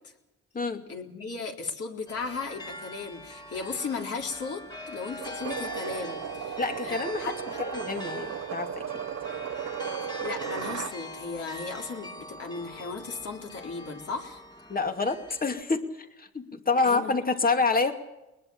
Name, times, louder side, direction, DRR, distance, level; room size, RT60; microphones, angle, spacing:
voice 1, 0.9-7.6 10.0-14.5 16.8-17.1, left 4 dB, 50° left, 1 dB, 4.1 m, -36 dB
sound 1, 2.1-15.6, left 1 dB, 15° left, 2.6 m, -42 dB
sound 2, 5.2-11.0, right 10 dB, 55° right, 0.9 m, -36 dB
voice 2, 6.6-7.3 7.6-8.8 14.7-17.9, left 4 dB, 30° left, 6 dB, 2.6 m, -27 dB
21.5 x 21.0 x 7.3 m, 0.96 s
cardioid pair, 90°, 30 cm